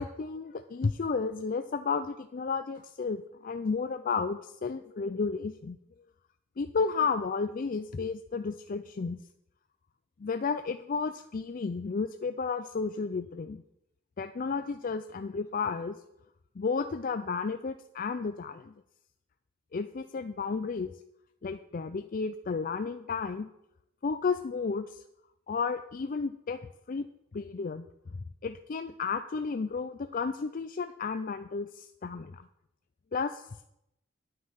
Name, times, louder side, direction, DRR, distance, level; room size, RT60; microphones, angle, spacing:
voice 1, 0.0-5.8 6.6-9.2 10.2-13.6 14.2-16.0 16.6-18.7 19.7-20.9 21.4-23.5 24.0-25.0 25.5-26.6 26.9-27.1 27.3-27.8 28.4-32.5 33.1-33.5, left 4 dB, 45° left, 9 dB, 0.4 m, -32 dB
9.4 x 9.4 x 5.8 m, 0.82 s
head